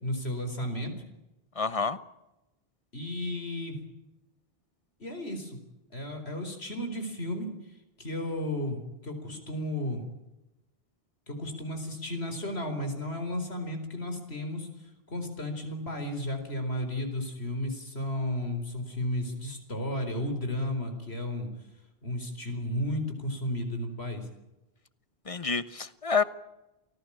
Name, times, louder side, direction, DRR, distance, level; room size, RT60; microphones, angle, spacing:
voice 1, 0.0-0.9 2.9-3.8 5.0-5.6 5.9-7.5 8.0-10.0 11.3-21.5 22.0-24.3, left 1 dB, 85° left, 5 dB, 4.7 m, -33 dB
voice 2, 1.5-2.0 25.2-26.2, left 5 dB, 35° left, 14 dB, 1.2 m, -28 dB
28.5 x 18.5 x 8.7 m, 0.96 s
omnidirectional pair, 1.0 m